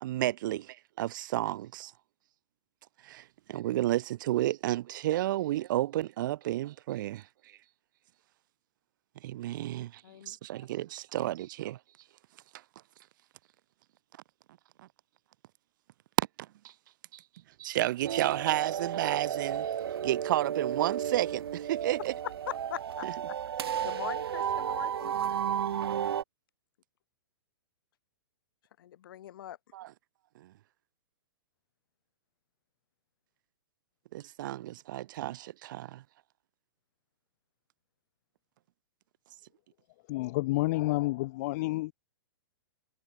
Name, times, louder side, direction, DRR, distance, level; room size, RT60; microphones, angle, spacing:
voice 1, 0.0-1.9 3.0-7.6 9.1-12.1 12.3-12.6 14.8-14.9 16.2-16.7 17.1-22.2 23.0-23.2 23.8-23.9 24.4-24.5 25.1-25.4 29.7-29.9 30.3-30.5 34.1-36.0, right 14 dB, 55° right, 0.9 m, -32 dB
voice 2, 10.0-10.4 11.2-11.3 22.2-23.1 23.8-25.1 28.8-29.6, left 12 dB, 60° left, 4.2 m, -41 dB
sound 1, 18.0-26.2, right 9 dB, 75° right, 1.7 m, -33 dB
voice 3, 40.1-41.9, left 20 dB, 40° left, 0.6 m, -29 dB
hypercardioid pair, 140°, 13 cm